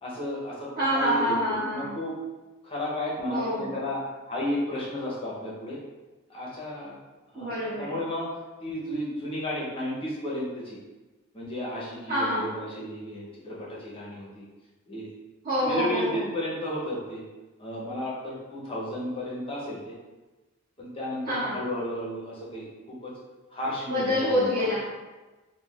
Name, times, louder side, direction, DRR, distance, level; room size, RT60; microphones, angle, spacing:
voice 1, 0.0-2.1 2.6-5.8 6.3-7.0 7.3-7.5 7.8-8.3 8.6-10.8 11.3-14.5 14.9-15.1 15.6-17.2 17.6-19.9 20.8-23.1 23.5-24.5, left 1 dB, 25° left, -6 dB, 0.7 m, -33 dB
voice 2, 0.8-2.0 3.3-3.8 7.3-8.0 12.1-12.5 15.4-16.3 21.3-21.6 23.9-24.8, equal, 40° right, -10 dB, 1.4 m, -26 dB
3.7 x 2.2 x 2.3 m, 1.2 s
head